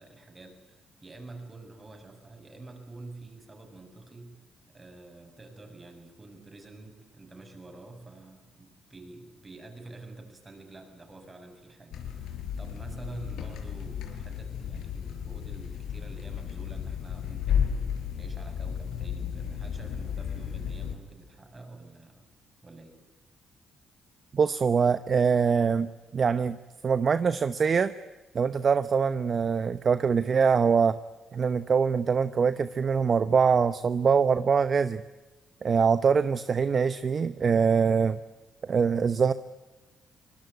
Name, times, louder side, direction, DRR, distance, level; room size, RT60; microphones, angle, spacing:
voice 1, 0.0-17.7 18.1-22.2 22.6-23.0, right 2 dB, 25° right, 5 dB, 7.4 m, -48 dB
sound 1, 11.9-21.0, left 8 dB, 80° left, 5.0 m, -33 dB
voice 2, 24.3-26.6 26.8-27.9 28.3-31.0 31.3-35.0 35.6-38.2 38.7-39.3, right 6 dB, 45° right, 13 dB, 0.9 m, -23 dB
25.0 x 20.5 x 9.4 m, 1.2 s
cardioid pair, 90°, 0 cm